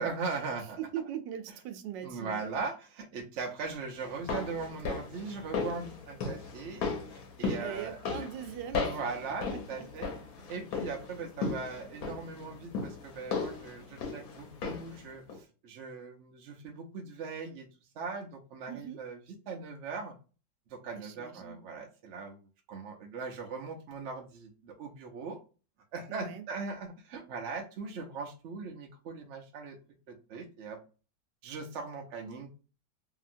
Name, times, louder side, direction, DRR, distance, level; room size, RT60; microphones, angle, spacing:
voice 1, 0.0-0.8 2.0-6.9 7.1-8.0 8.7-10.1 10.5-17.7 17.9-19.2 19.5-20.2 20.7-25.4 25.9-29.8 30.1-30.8 31.4-32.5, right 4 dB, 70° right, 0.6 m, -39 dB
voice 2, 0.9-2.5 7.6-9.0 9.5-10.1 18.7-19.0 21.0-21.6 26.1-26.5, right 9 dB, 90° right, 1.3 m, -41 dB
sound 1, 4.0-15.0 15.3-15.4, left 4 dB, 65° left, 1.1 m, -37 dB
2.8 x 2.8 x 2.5 m
omnidirectional pair, 1.9 m